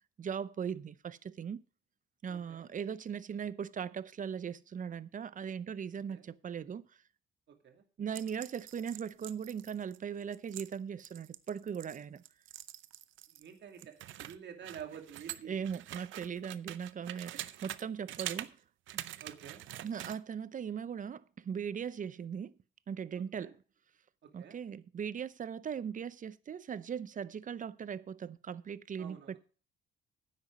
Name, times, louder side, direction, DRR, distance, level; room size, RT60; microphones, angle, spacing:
voice 1, 0.2-1.6 2.2-6.9 8.0-12.2 15.5-18.6 19.8-22.5 22.9-23.5 24.3-29.4, right 7 dB, 40° right, 0.7 m, -39 dB
voice 2, 2.3-2.7 6.1-6.2 7.5-7.8 13.4-15.5 17.3-17.4 19.2-19.6 23.3-23.5 24.4-24.6 29.0-29.4, right 8 dB, 65° right, 2.4 m, -49 dB
sound 1, 8.1-13.5 13.8-17.8 18.1-18.5 18.9-20.2, right 14 dB, 80° right, 0.6 m, -45 dB
9.7 x 8.3 x 5.1 m
cardioid pair, 90°, 20 cm